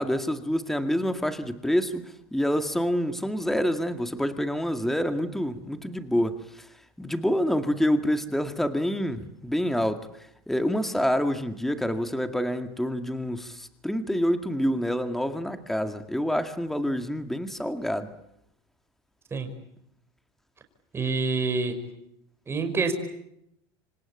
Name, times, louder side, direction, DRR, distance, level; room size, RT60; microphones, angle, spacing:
voice 1, 0.0-6.7 7.0-10.1 10.5-18.1, equal, ahead, 8 dB, 2.0 m, -27 dB
voice 2, 20.9-21.8 22.5-22.9, right 4 dB, 20° right, 6 dB, 5.6 m, -26 dB
27.5 x 25.0 x 8.7 m, 0.78 s
supercardioid pair, 125°, 12 cm